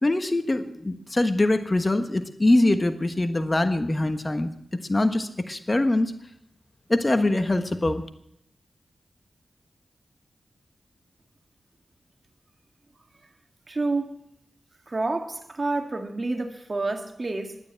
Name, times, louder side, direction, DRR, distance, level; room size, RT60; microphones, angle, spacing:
voice 1, 0.0-4.5 4.9-6.1 6.9-8.0, left 2 dB, 30° left, 1.2 m, -23 dB
voice 2, 13.7-14.3 14.9-17.6, right 3 dB, 40° right, 1.8 m, -29 dB
11.5 x 9.8 x 9.1 m
cardioid pair, 55°, 0 cm